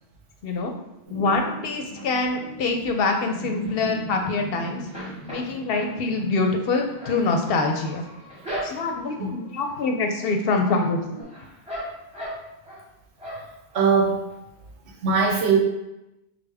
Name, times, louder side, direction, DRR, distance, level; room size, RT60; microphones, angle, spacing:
voice 1, 0.4-0.7 1.1-4.9 5.3-8.0 8.6-11.0, left 3 dB, 65° left, 4 dB, 0.7 m, -25 dB
sound 1, 1.0-11.2, equal, 35° right, 1.6 m, -40 dB
sound 2, 2.0-2.7 3.2-4.5 4.8-9.1 9.6-10.1 10.4-12.8 13.2-13.8 14.2-14.3 14.6-14.7, equal, 5° right, 1.1 m, -38 dB
voice 2, 13.7-14.2 15.0-15.6, right 5 dB, 85° right, 1 dB, 1.0 m, -20 dB
4.9 x 2.1 x 3.4 m, 0.92 s
omnidirectional pair, 1.1 m